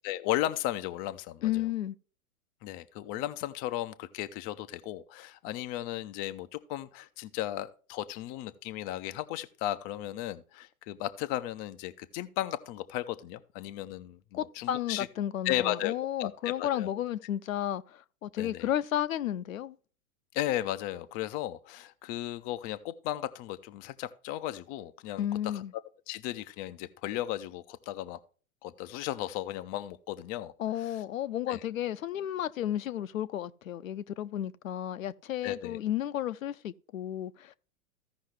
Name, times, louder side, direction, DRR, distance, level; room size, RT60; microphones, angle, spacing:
voice 1, 0.0-1.7 2.6-15.1 15.4-15.9 16.2-16.9 18.4-18.7 20.3-25.6 26.1-28.2 28.6-30.5 30.8-30.9 31.5-31.6 35.4-35.8, left 14 dB, 20° left, 0.4 m, -35 dB
voice 2, 1.4-2.0 14.3-19.8 25.2-25.7 30.6-37.5, left 11 dB, 65° left, 0.7 m, -33 dB
15.0 x 5.5 x 3.2 m
figure-of-eight pair, 100°, 43 cm